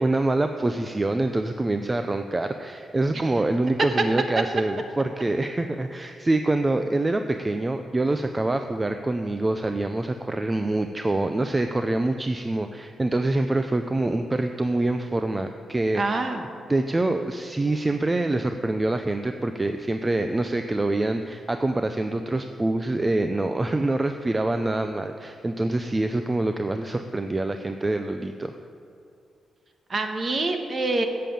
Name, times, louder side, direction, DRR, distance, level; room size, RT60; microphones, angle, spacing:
voice 1, 0.0-16.3 16.7-28.6, right 2 dB, 20° right, 7 dB, 0.5 m, -25 dB
voice 2, 15.9-16.4 29.9-31.1, right 2 dB, 40° right, 5 dB, 1.2 m, -26 dB
9.0 x 7.7 x 8.6 m, 2.5 s
cardioid pair, 115°, 0 cm